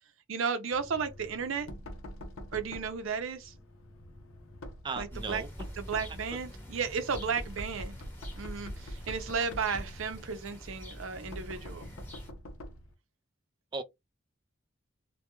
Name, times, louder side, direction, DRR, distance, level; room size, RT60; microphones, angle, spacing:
voice 1, 0.3-1.7 2.5-3.5 5.0-5.4 5.8-8.0 8.4-11.8, right 5 dB, 80° right, 0.5 m, -34 dB
Knock, 0.7-12.9, equal, 90° left, 0.6 m, -45 dB
voice 2, 4.8-5.5 13.7-13.8, right 4 dB, 25° right, 0.3 m, -36 dB
sound 1, 5.1-12.3, equal, 10° left, 0.9 m, -46 dB
2.2 x 2.2 x 2.9 m
head